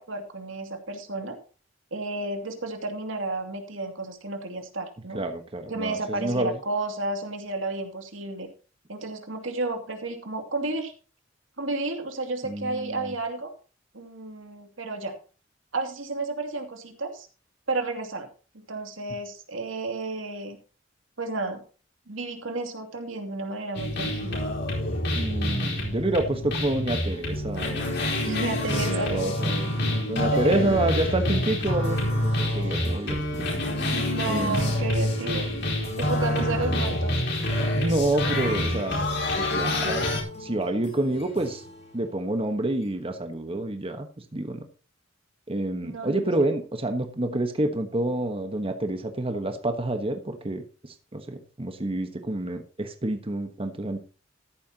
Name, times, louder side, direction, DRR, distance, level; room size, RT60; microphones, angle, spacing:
voice 1, 0.0-1.4 1.9-5.2 5.7-8.5 8.9-10.9 11.6-13.5 13.9-15.1 15.7-17.3 17.7-18.3 18.5-20.6 21.2-21.6 22.1-24.4 28.2-29.1 30.3-30.9 32.5-32.9 33.8-35.5 36.0-37.2 45.8-46.3 47.2-47.4, right 2 dB, 80° right, 5 dB, 2.6 m, -32 dB
voice 2, 5.1-6.5 12.4-13.1 25.1-27.9 28.7-33.5 34.3-34.9 36.4-36.9 37.7-39.1 39.4-40.1 40.4-41.6 41.9-44.6 45.5-54.0, right 1 dB, 30° right, 6 dB, 1.2 m, -28 dB
sound 1, 23.7-40.2, left 1 dB, 60° left, 4.3 m, -27 dB
sound 2, 27.3-43.2, left 1 dB, 35° left, 4.5 m, -42 dB
14.0 x 11.5 x 2.9 m, 0.36 s
head